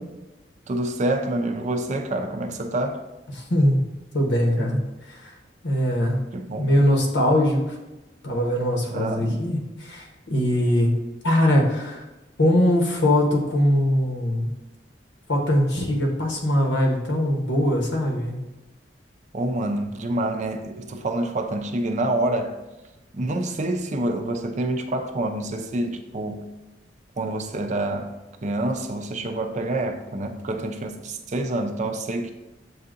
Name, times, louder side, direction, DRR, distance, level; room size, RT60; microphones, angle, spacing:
voice 1, 0.7-3.0 6.3-6.8 8.9-9.4 19.3-22.6 23.1-26.5 27.2-28.2 28.4-32.3, right 1 dB, 40° right, 5 dB, 0.4 m, -27 dB
voice 2, 3.3-3.9 4.1-5.3 5.6-6.3 6.6-7.8 8.2-11.0 11.2-12.0 12.4-14.5 15.3-18.4, left 1 dB, 75° left, 1 dB, 0.9 m, -21 dB
7.6 x 2.7 x 2.5 m, 1.1 s
head